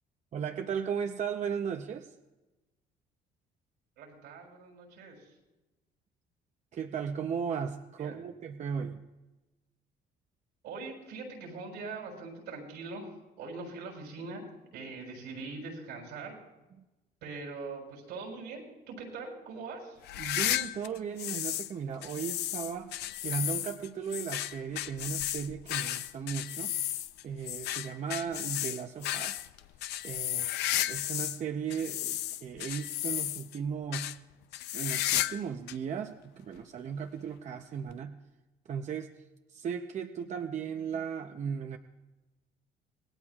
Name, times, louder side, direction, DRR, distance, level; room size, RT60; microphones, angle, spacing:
voice 1, 0.3-2.1 6.7-9.0 20.2-22.9 23.2-26.7 27.2-29.4 30.0-30.5 30.9-34.1 34.7-38.2 38.7-39.2 39.5-41.8, right 7 dB, 45° right, 5 dB, 0.8 m, -36 dB
voice 2, 4.0-5.3 8.0-8.2 10.6-14.4 14.7-16.4 17.2-18.6 18.9-20.0, right 3 dB, 85° right, 0 dB, 6.6 m, -42 dB
sound 1, 20.0-21.7 22.0-31.4 31.7-33.6 33.9-34.2 34.5-35.4 35.7-35.8 36.6-36.7 37.9-38.0, left 13 dB, 80° left, 0.6 m, -33 dB
27.0 x 19.5 x 2.4 m, 1.1 s
cardioid pair, 110°, 17 cm